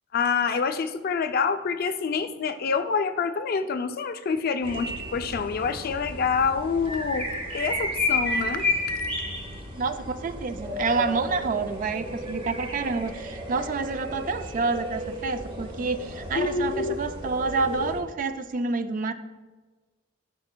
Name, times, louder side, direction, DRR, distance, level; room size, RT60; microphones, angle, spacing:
voice 1, 0.1-7.3 7.5-8.7 16.3-17.0, left 5 dB, 45° left, 9 dB, 0.3 m, -27 dB
sound 1, 4.6-18.0, left 1 dB, 25° right, 0.9 m, -32 dB
voice 2, 9.8-19.1, right 4 dB, 40° right, 10 dB, 0.3 m, -28 dB
12.0 x 5.2 x 2.2 m, 1.3 s
head